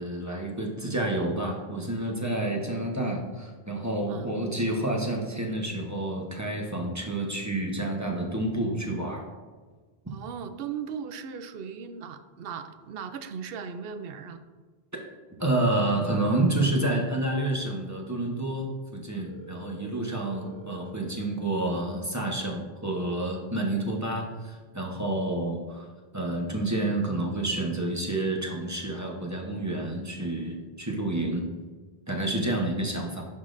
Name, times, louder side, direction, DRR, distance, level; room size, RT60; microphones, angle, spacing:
voice 1, 0.0-9.3 15.4-25.9 26.1-31.5 32.1-33.2, right 2 dB, 20° right, 0 dB, 0.8 m, -29 dB
voice 2, 10.1-14.4, right 7 dB, 70° right, 9 dB, 0.7 m, -38 dB
Telephone, 19.2-21.2, right 2 dB, 85° left, 1.3 m, -47 dB
11.5 x 3.8 x 2.5 m, 1.4 s
omnidirectional pair, 1.0 m